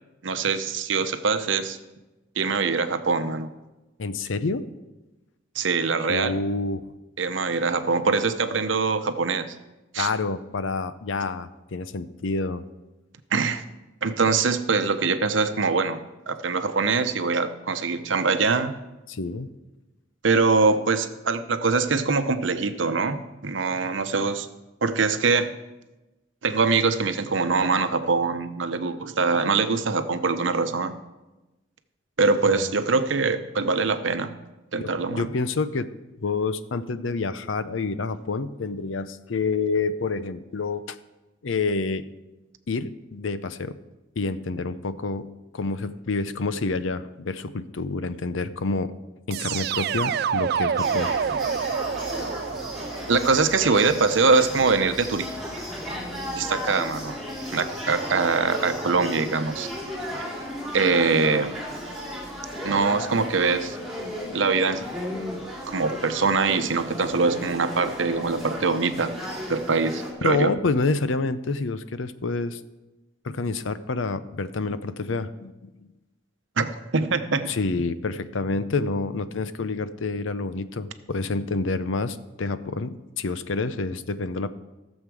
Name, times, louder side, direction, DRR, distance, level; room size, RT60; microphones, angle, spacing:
voice 1, 0.2-1.8 2.4-3.5 5.5-6.4 7.2-9.5 9.9-10.1 13.3-13.6 14.0-16.0 16.3-18.8 20.2-24.5 24.8-25.5 26.4-30.9 32.2-34.3 34.7-35.3 53.1-55.3 56.3-57.2 57.5-59.7 60.7-61.6 62.6-63.8 64.3-64.9 65.7-69.1 69.5-70.5 76.6-77.6, right 4 dB, 75° right, 10 dB, 0.8 m, -23 dB
voice 2, 4.0-4.6 6.1-6.8 10.0-12.6 19.1-19.5 32.4-32.7 34.8-35.9 36.2-41.0 41.4-42.0 42.7-43.8 44.2-45.3 45.5-48.9 49.3-51.1 70.2-72.6 73.2-75.7 77.5-84.5, left 3 dB, 85° left, 13 dB, 0.6 m, -28 dB
sound 1, 49.3-54.2, right 7 dB, 55° right, 0.3 m, -28 dB
sound 2, 50.8-70.1, equal, ahead, 2.9 m, -35 dB
15.5 x 7.3 x 4.8 m, 1.1 s
head